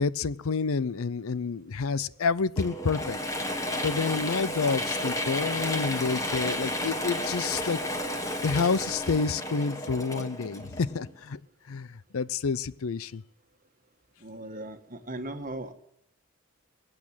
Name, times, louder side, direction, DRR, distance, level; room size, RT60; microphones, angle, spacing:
voice 1, 0.0-3.2 3.8-7.8 8.4-11.4 11.7-13.2, left 4 dB, 70° left, 18 dB, 0.6 m, -29 dB
Mechanisms / Drill, 2.6-11.2, left 1 dB, 15° left, 1.5 m, -32 dB
voice 2, 14.2-15.7, right 1 dB, 40° right, 7 dB, 1.5 m, -38 dB
22.5 x 8.6 x 7.3 m, 0.72 s
head